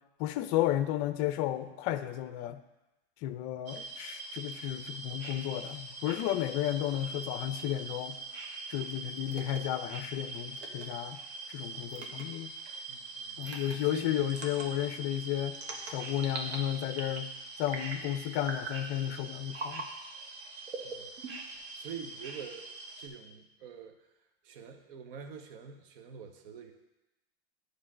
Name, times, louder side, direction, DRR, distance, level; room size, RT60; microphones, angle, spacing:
voice 1, 0.2-2.6 3.2-8.2 8.7-11.2 11.5-12.5 13.4-15.6 15.9-17.3 17.6-19.8, left 12 dB, 40° left, 11 dB, 0.5 m, -33 dB
sound 1, 3.7-23.1, right 3 dB, 30° right, 1.1 m, -43 dB
sound 2, 9.3-9.6 10.6-10.9 11.9-12.2 13.4-13.8 14.3-14.7 15.5-16.6 16.9-17.3 17.7-18.1 18.4-18.8 19.5-19.9 20.7-21.6, right 3 dB, 80° right, 1.5 m, -40 dB
voice 2, 12.9-14.6 20.8-21.1 21.7-24.0 24.4-26.7, right 6 dB, 60° right, 6 dB, 1.0 m, -46 dB
9.5 x 3.3 x 6.2 m, 1.0 s
hypercardioid pair, 125°, 32 cm